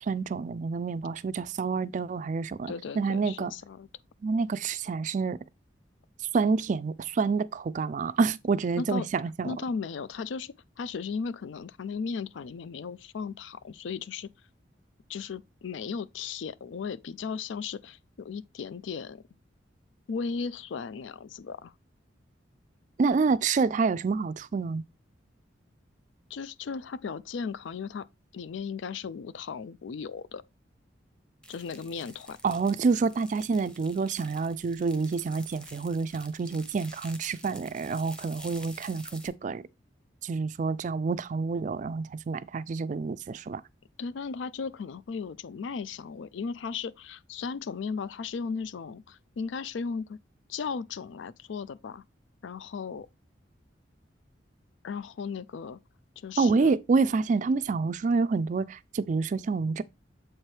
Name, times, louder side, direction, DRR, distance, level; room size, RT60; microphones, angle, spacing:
voice 1, 0.0-3.5 4.2-5.4 6.3-9.5 23.0-24.8 32.4-39.6 40.2-43.6 56.4-59.8, right 4 dB, 40° right, 0.3 m, -28 dB
voice 2, 2.7-3.9 8.8-9.1 9.4-14.3 15.1-19.2 20.1-21.7 26.3-28.1 28.3-30.4 31.5-32.4 44.0-50.2 50.5-52.0 52.4-53.1 54.8-55.8 56.2-56.8, left 5 dB, 75° left, 0.4 m, -36 dB
sound 1, 31.4-39.3, equal, 5° left, 0.8 m, -49 dB
7.4 x 4.5 x 3.2 m
head